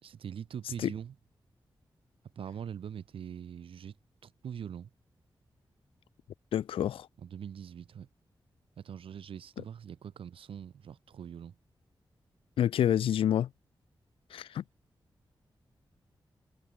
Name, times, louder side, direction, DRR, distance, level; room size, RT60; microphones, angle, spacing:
voice 1, 0.0-1.1 2.4-4.0 4.2-4.9 7.2-8.1 8.8-11.6, right 8 dB, 85° right, 2.3 m, -43 dB
voice 2, 6.5-7.1 12.6-13.5 14.3-14.6, left 10 dB, 85° left, 0.4 m, -28 dB
cardioid pair, 50°, 9 cm